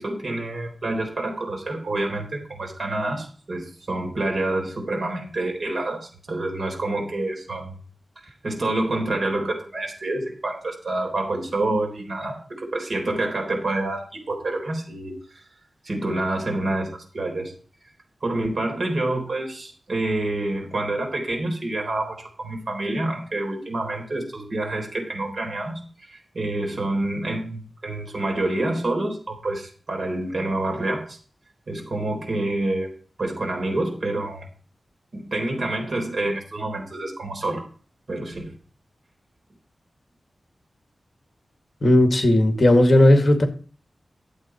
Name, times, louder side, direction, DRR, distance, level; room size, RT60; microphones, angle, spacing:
voice 1, 0.0-7.7 8.4-15.4 15.8-17.5 18.2-31.2 31.7-32.9 33.2-34.5 35.1-37.6 38.1-38.5, right 2 dB, 55° right, 1 dB, 3.8 m, -27 dB
voice 2, 41.8-43.4, left 1 dB, 40° left, 5 dB, 2.0 m, -15 dB
11.5 x 8.0 x 4.5 m, 0.42 s
wide cardioid pair, 110°, 0 cm